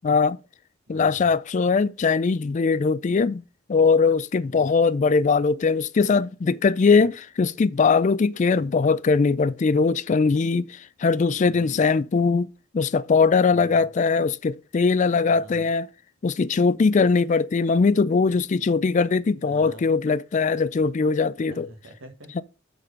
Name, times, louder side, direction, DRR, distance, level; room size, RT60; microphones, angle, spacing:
voice 1, 0.0-0.4 0.9-3.4 3.7-12.5 12.7-15.9 16.2-21.7 22.4-22.5, left 4 dB, 35° left, 0.4 m, -21 dB
voice 2, 0.9-1.3 4.4-4.7 8.6-8.9 11.3-11.9 13.5-13.9 15.2-15.7 19.4-19.9 21.4-22.4, right 1 dB, 70° right, 1.6 m, -45 dB
7.6 x 4.1 x 5.3 m
head